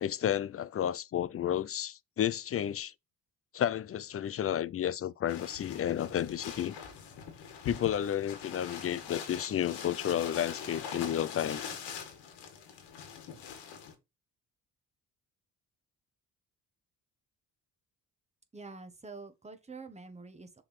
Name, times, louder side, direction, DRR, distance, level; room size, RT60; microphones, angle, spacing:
voice 1, 0.0-2.9 3.5-6.8 7.6-11.6, left 10 dB, 35° left, 0.4 m, -31 dB
sound 1, 5.3-13.9, left 7 dB, 90° left, 1.8 m, -43 dB
voice 2, 18.5-20.6, right 4 dB, 15° right, 1.4 m, -47 dB
6.6 x 3.8 x 4.2 m
cardioid pair, 90°, 40 cm